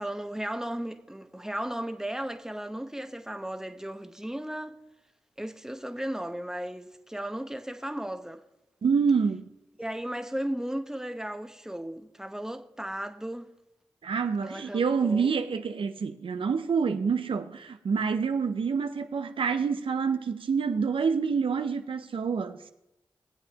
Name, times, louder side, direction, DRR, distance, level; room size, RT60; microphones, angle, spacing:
voice 1, 0.0-4.8 5.4-8.4 9.8-13.5 14.4-15.3, right 1 dB, 5° right, 0.9 m, -35 dB
voice 2, 8.8-9.5 14.0-22.6, right 5 dB, 70° right, 0.5 m, -27 dB
20.0 x 7.7 x 2.9 m
cardioid pair, 45°, 9 cm